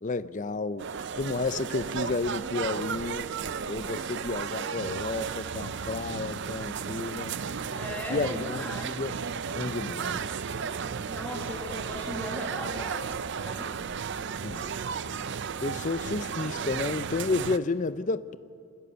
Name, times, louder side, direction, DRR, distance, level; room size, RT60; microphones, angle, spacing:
voice 1, 0.0-3.3 3.7-7.4 8.1-9.1 9.5-10.2 14.4-14.8 15.6-18.4, left 3 dB, 35° left, 0.5 m, -31 dB
sound 1, 0.8-17.6, right 6 dB, 55° right, 0.5 m, -34 dB
voice 2, 7.7-8.9 11.1-13.7, left 1 dB, 5° left, 2.1 m, -38 dB
26.0 x 15.5 x 6.9 m
head